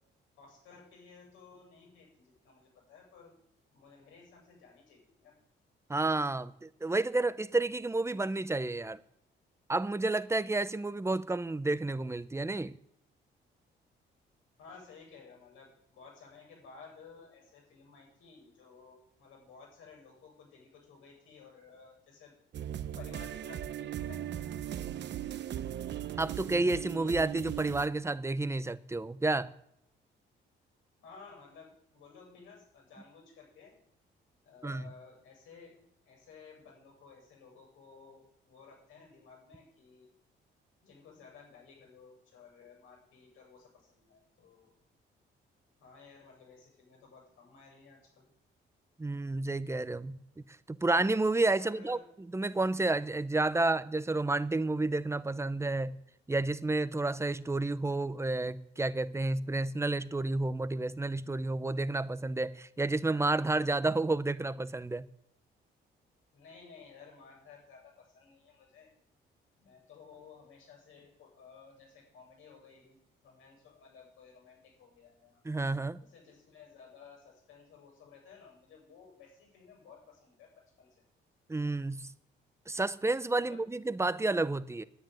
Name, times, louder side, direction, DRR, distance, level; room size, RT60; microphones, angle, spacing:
voice 1, 0.4-3.3 3.7-5.3 14.6-22.3 23.0-24.2 31.0-33.7 34.4-40.1 40.8-44.7 45.8-48.3 51.6-52.1 66.3-68.9 69.6-73.0 73.2-75.4 76.0-80.5 80.8-80.9 83.4-83.6, left 5 dB, 90° left, 7.5 m, -55 dB
voice 2, 5.9-9.0 9.7-12.8 26.2-29.5 34.6-34.8 49.0-50.2 50.7-52.0 52.3-56.0 56.3-65.1 75.4-76.0 81.5-82.1 82.7-84.8, right 2 dB, 15° right, 0.8 m, -30 dB
sound 1, 22.5-27.9, right 11 dB, 65° right, 0.8 m, -38 dB
10.5 x 9.8 x 9.2 m
cardioid pair, 90°, 20 cm